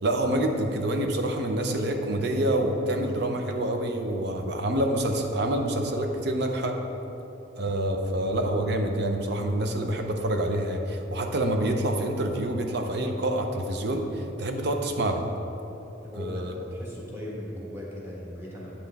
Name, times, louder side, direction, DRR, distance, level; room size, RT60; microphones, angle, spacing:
voice 1, 0.0-6.7 7.6-15.2 16.2-16.6, right 1 dB, 65° right, 4 dB, 0.6 m, -27 dB
voice 2, 16.0-18.9, left 1 dB, 15° right, -5 dB, 1.4 m, -38 dB
8.4 x 5.8 x 3.5 m, 3.0 s
head